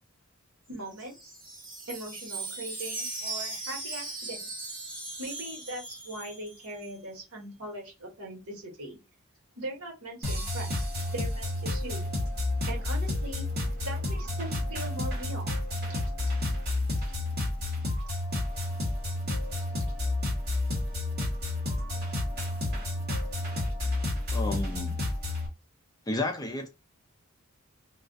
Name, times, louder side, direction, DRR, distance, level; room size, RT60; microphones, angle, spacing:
Wind chime, 0.7-6.9, right 2 dB, 20° right, 0.9 m, -39 dB
voice 1, 0.7-1.3 1.9-4.4 5.2-9.0 9.5-12.0 12.7-13.4 13.8-15.5, right 1 dB, 80° right, 1.1 m, -40 dB
sound 1, 10.2-25.5, left 2 dB, 45° right, 1.2 m, -30 dB
voice 2, 24.3-25.0 26.1-26.7, left 2 dB, 15° left, 0.4 m, -32 dB
2.4 x 2.2 x 2.4 m
head